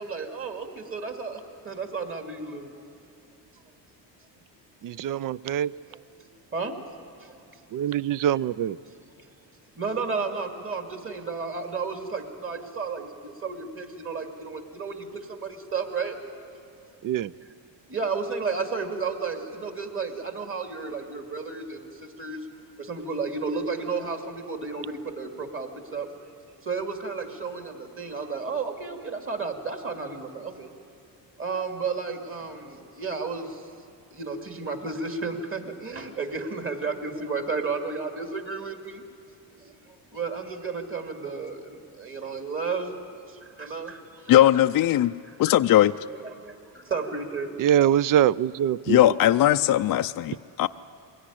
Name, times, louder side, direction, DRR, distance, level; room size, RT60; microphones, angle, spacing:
voice 1, 0.0-2.7 6.2-6.8 7.2-7.5 9.8-16.5 17.9-22.5 22.8-26.1 26.6-30.7 31.4-33.7 34.1-39.0 39.5-42.9 43.2-44.3 45.3-45.4 46.1-47.9, right 4 dB, 30° right, 4 dB, 2.5 m, -33 dB
voice 2, 4.8-5.7 7.7-8.8 17.0-17.3 47.6-49.0, right 10 dB, 45° right, 20 dB, 0.5 m, -23 dB
voice 3, 44.3-45.1 45.4-45.9 48.9-50.7, left 13 dB, 50° left, 8 dB, 0.5 m, -19 dB
22.0 x 16.5 x 10.0 m, 2.5 s
cardioid pair, 105°, 45 cm